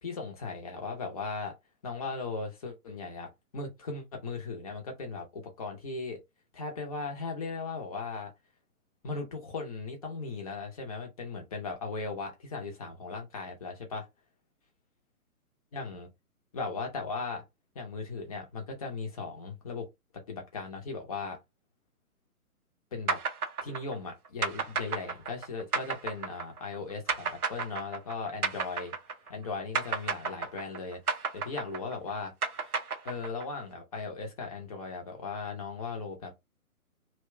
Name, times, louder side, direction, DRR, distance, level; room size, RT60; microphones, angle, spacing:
voice 1, 0.0-1.5 1.8-6.2 6.5-8.3 9.0-14.1 15.7-16.1 16.5-17.4 17.7-19.9 20.1-21.4 22.9-23.2 23.6-28.9 29.3-32.8 33.0-36.3, left 4 dB, 25° left, 0.7 m, -37 dB
sound 1, 23.1-29.4 29.7-33.6, right 5 dB, 80° right, 0.8 m, -32 dB
2.8 x 2.2 x 3.2 m
figure-of-eight pair, 135°, 44 cm